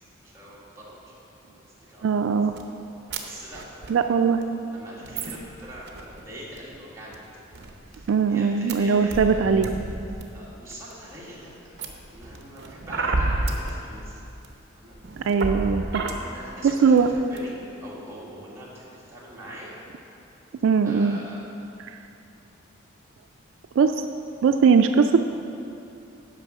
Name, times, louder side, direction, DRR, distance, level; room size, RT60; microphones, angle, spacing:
voice 1, 0.2-1.1 1.5-2.3 3.2-9.8 10.3-14.2 14.8-14.9 16.2-19.7 20.8-21.4, equal, 15° right, -7 dB, 1.8 m, -43 dB
voice 2, 2.0-2.6 3.9-4.4 8.1-9.7 15.3-16.1 16.6-17.1 20.6-21.2 23.8-23.9 24.4-25.2, right 6 dB, 70° right, 7 dB, 0.3 m, -20 dB
sound 1, 2.6-2.7 3.1-3.2 3.4-3.9 4.4-4.5 5.0-6.2 6.6-6.8 7.1-7.2 7.5-8.1 8.7-8.8 9.1-10.2 10.7-11.2 11.8-13.7 14.4-14.5 14.9-16.1 16.7-16.8 17.0-17.4, right 2 dB, 55° right, 0.7 m, -30 dB
9.0 x 5.3 x 6.0 m, 2.7 s
head